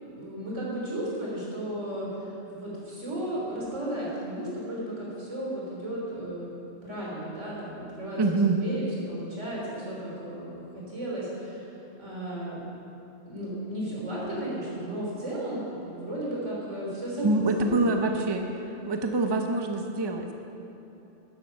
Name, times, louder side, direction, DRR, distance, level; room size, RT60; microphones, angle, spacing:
voice 1, 0.0-6.5 6.8-12.6 13.3-18.0, right 1 dB, 85° right, -6 dB, 3.9 m, -34 dB
voice 2, 8.1-8.6 17.2-18.5 18.9-20.3, right 2 dB, 25° right, 4 dB, 0.7 m, -25 dB
12.5 x 9.8 x 5.6 m, 3.0 s
omnidirectional pair, 1.2 m